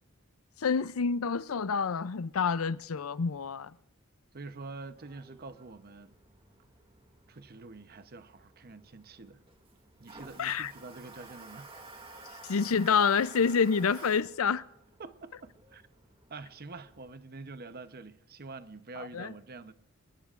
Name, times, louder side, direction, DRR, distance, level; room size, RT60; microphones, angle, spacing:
voice 1, 0.6-3.7 10.4-10.7 12.5-14.6 19.0-19.3, left 6 dB, 75° left, 0.5 m, -28 dB
voice 2, 4.3-6.1 7.3-9.4 10.0-11.7 15.0-15.8 16.3-19.7, right 3 dB, 45° right, 0.9 m, -46 dB
Toilet flush, 4.8-17.1, right 3 dB, 25° right, 2.3 m, -53 dB
27.5 x 20.0 x 2.5 m
head